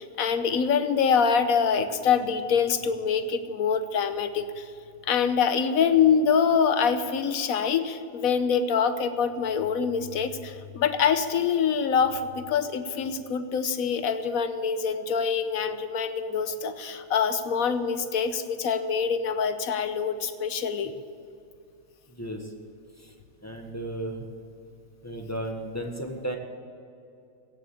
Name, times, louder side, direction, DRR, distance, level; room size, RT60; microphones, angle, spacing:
voice 1, 0.0-4.7 5.1-20.9, left 6 dB, 70° left, 10 dB, 1.3 m, -25 dB
voice 2, 22.1-22.5 23.0-23.1 23.4-24.3 25.0-26.4, right 1 dB, 10° left, 2 dB, 1.3 m, -34 dB
16.5 x 7.3 x 8.1 m, 2.6 s
omnidirectional pair, 1.6 m